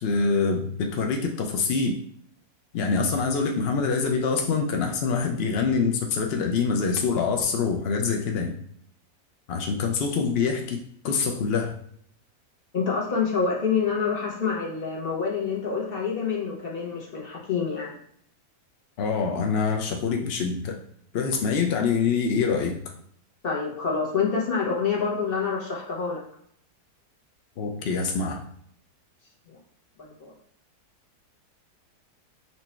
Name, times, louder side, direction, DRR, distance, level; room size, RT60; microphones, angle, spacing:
voice 1, 0.0-2.0 2.7-8.5 9.5-10.8 11.0-11.7 19.0-20.8 21.1-22.8 27.6-28.4, left 5 dB, 80° left, 3 dB, 0.5 m, -25 dB
voice 2, 12.7-17.9 23.4-26.2 30.0-30.3, left 5 dB, 40° left, -2 dB, 1.2 m, -27 dB
4.4 x 2.7 x 4.2 m, 0.65 s
omnidirectional pair, 1.7 m